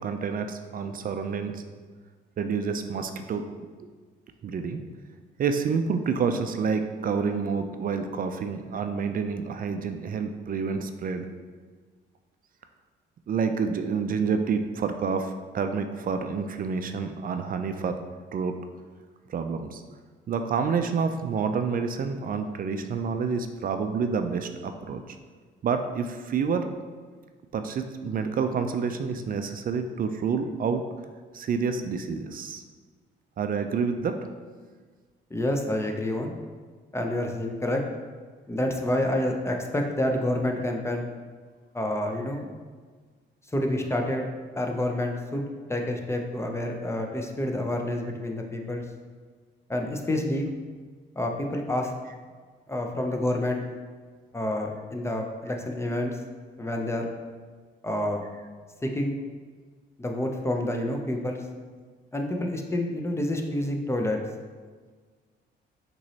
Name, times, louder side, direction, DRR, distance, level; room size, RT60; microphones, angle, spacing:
voice 1, 0.0-1.6 2.4-3.5 4.4-4.8 5.4-11.3 13.3-18.0 18.3-18.6 19.3-19.8 20.3-25.2 25.6-26.7 27.5-30.8 31.3-32.6 33.4-34.2, right 5 dB, 45° right, 7 dB, 0.4 m, -28 dB
voice 2, 35.3-36.3 36.9-37.8 38.5-41.1 41.7-42.5 43.5-44.3 44.6-45.4 45.7-48.8 49.7-50.5 51.2-51.9 52.7-53.6 54.3-56.2 56.6-57.1 57.8-58.2 58.8-59.2 60.0-61.4 62.1-64.2, left 1 dB, 15° left, 2 dB, 0.6 m, -28 dB
5.9 x 3.0 x 2.8 m, 1.5 s
cardioid pair, 90°, 20 cm